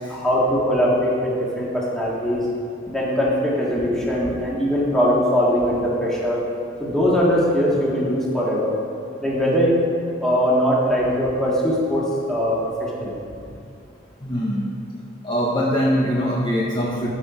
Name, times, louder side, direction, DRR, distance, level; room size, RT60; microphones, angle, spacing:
voice 1, 0.1-2.4 2.9-6.4 6.8-8.7 9.2-9.8 10.2-13.2, equal, 5° left, -6 dB, 1.6 m, -21 dB
voice 2, 14.2-14.6 15.2-17.1, equal, 25° left, -4 dB, 0.7 m, -22 dB
12.5 x 5.4 x 4.9 m, 2.5 s
head